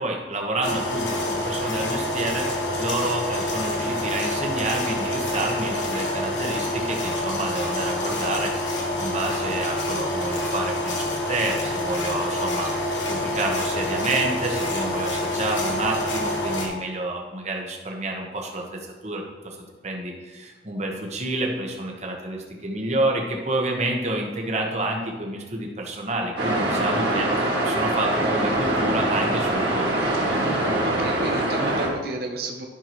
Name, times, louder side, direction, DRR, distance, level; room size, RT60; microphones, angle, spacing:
voice 1, 0.0-19.6 19.8-29.9, right 2 dB, 40° right, 1 dB, 1.1 m, -29 dB
sound 1, 0.6-16.7, left 1 dB, 90° left, 1.3 m, -27 dB
sound 2, 26.4-31.9, right 1 dB, 75° right, 2.1 m, -23 dB
voice 2, 30.4-32.7, right 2 dB, 55° right, 2 dB, 0.7 m, -32 dB
11.0 x 5.9 x 3.0 m, 1.3 s
head